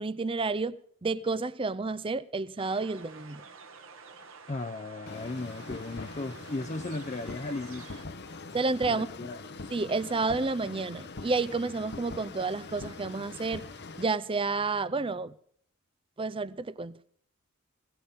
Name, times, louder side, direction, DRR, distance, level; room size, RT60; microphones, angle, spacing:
voice 1, 0.0-3.4 8.5-9.1 9.7-13.7 14.0-15.3 16.2-17.0, right 3 dB, 25° right, 0.5 m, -30 dB
sound 1, 2.6-8.0, right 5 dB, 70° right, 1.8 m, -50 dB
voice 2, 4.5-8.0 8.9-9.4, left 2 dB, 35° left, 0.6 m, -36 dB
sound 2, 5.1-14.1, left 3 dB, 55° left, 1.0 m, -43 dB
20.5 x 17.5 x 3.7 m
head